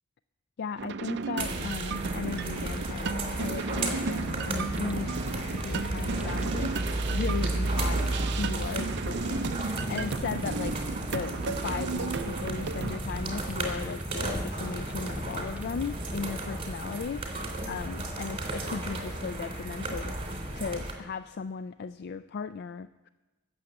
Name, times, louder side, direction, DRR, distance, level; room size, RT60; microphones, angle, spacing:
voice 1, 0.6-5.2 5.5-10.8 11.1-20.2 20.5-23.1, left 5 dB, 55° left, 12 dB, 0.3 m, -37 dB
sound 1, 0.8-13.0, right 4 dB, 55° right, 0.5 m, -34 dB
sound 2, 1.4-20.9, right 2 dB, 25° right, 2.9 m, -33 dB
Fire, 4.2-17.7, equal, 5° right, 0.5 m, -42 dB
18.0 x 7.0 x 7.9 m, 1.1 s
head